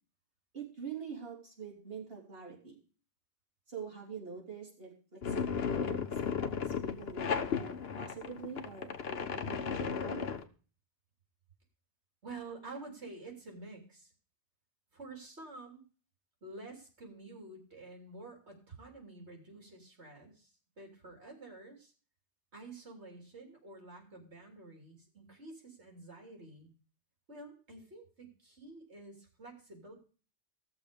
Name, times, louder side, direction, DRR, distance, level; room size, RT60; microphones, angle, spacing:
voice 1, 0.5-2.8 3.7-10.3, right 6 dB, 60° right, -3 dB, 3.5 m, -45 dB
sound 1, 5.2-10.4, left 6 dB, 65° left, 1.2 m, -35 dB
voice 2, 12.2-14.1 14.9-15.8 16.4-21.9 22.5-26.7 27.3-29.9, right 3 dB, 75° right, 1 dB, 3.4 m, -49 dB
16.0 x 6.9 x 5.1 m, 0.38 s
omnidirectional pair, 1.1 m